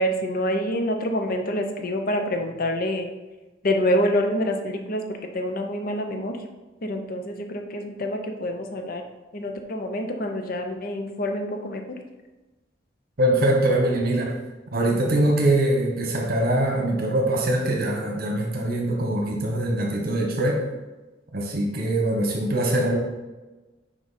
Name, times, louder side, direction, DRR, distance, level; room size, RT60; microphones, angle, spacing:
voice 1, 0.0-3.1 3.6-5.0 5.3-6.4 6.8-9.0 9.3-11.8, equal, 50° left, 4 dB, 0.7 m, -26 dB
voice 2, 13.2-14.3 14.7-20.6 21.3-23.0, right 1 dB, 55° right, 0 dB, 1.1 m, -23 dB
6.0 x 5.2 x 4.1 m, 1.2 s
head